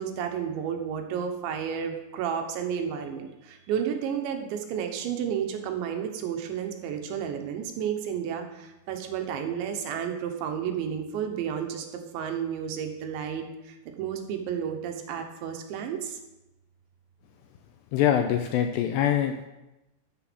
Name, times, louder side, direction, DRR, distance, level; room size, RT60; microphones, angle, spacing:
voice 1, 0.0-16.2, right 8 dB, 75° right, 4 dB, 3.3 m, -32 dB
voice 2, 17.9-19.3, left 10 dB, 85° left, 5 dB, 2.5 m, -24 dB
14.5 x 7.1 x 6.2 m, 0.97 s
omnidirectional pair, 5.5 m